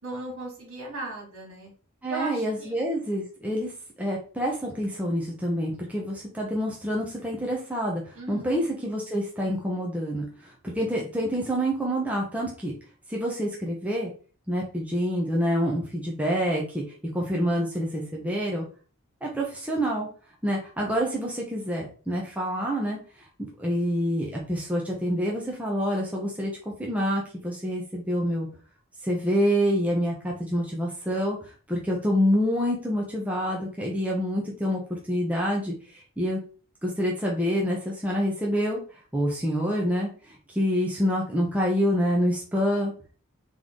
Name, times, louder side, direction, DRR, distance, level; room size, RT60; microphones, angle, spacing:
voice 1, 0.0-1.7 2.1-2.7 8.1-8.7, right 2 dB, 70° right, -2 dB, 2.5 m, -37 dB
voice 2, 2.0-3.7 4.0-12.7 13.1-14.1 14.5-16.8 17.1-18.6 19.2-20.1 20.4-23.0 23.6-28.5 29.0-31.4 31.7-36.4 36.8-38.8 39.1-42.9, equal, 5° right, -2 dB, 0.8 m, -27 dB
3.9 x 3.2 x 3.8 m, 0.38 s
head